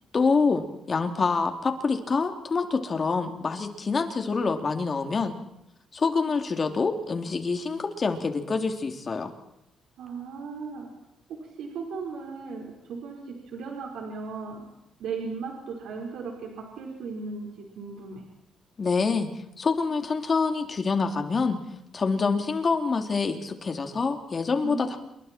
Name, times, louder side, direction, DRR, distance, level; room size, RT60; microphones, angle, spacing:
voice 1, 0.1-5.3 5.9-9.3 18.8-19.3 19.6-21.6 21.9-25.0, left 4 dB, 35° left, 5 dB, 3.1 m, -26 dB
voice 2, 10.0-10.9 11.3-14.6 15.0-18.3 24.6-25.0, right 4 dB, 80° right, 0 dB, 4.7 m, -36 dB
28.0 x 23.0 x 4.6 m, 0.85 s
cardioid pair, 90°, 0 cm